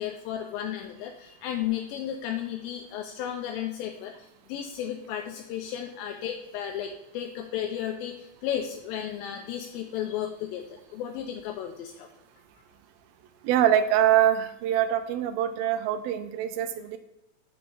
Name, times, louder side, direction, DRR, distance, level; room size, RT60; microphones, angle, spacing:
voice 1, 0.0-4.1 4.5-12.1, left 10 dB, 85° left, 3 dB, 2.3 m, -34 dB
voice 2, 13.4-17.0, right 11 dB, 90° right, 8 dB, 2.4 m, -24 dB
7.5 x 5.8 x 3.9 m, 0.89 s
omnidirectional pair, 4.2 m